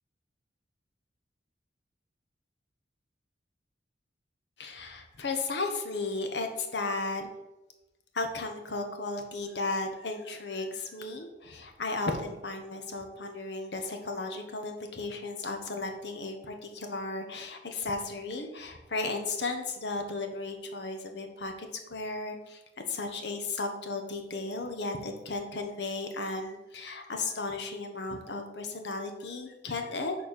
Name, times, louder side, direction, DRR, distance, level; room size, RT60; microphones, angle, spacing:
voice 1, 4.6-7.3 8.1-30.3, left 3 dB, 65° left, 4 dB, 1.0 m, -35 dB
6.8 x 4.3 x 6.7 m, 1.0 s
head